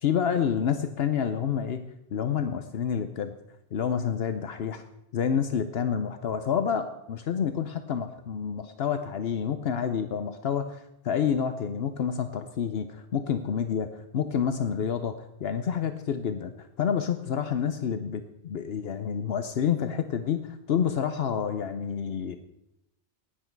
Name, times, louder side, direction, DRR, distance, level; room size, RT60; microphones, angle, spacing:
voice 1, 0.0-1.9 2.1-3.3 3.7-4.8 5.1-16.5 16.8-22.4, left 7 dB, 70° left, 9 dB, 1.0 m, -28 dB
16.5 x 10.5 x 4.6 m, 0.86 s
omnidirectional pair, 1.1 m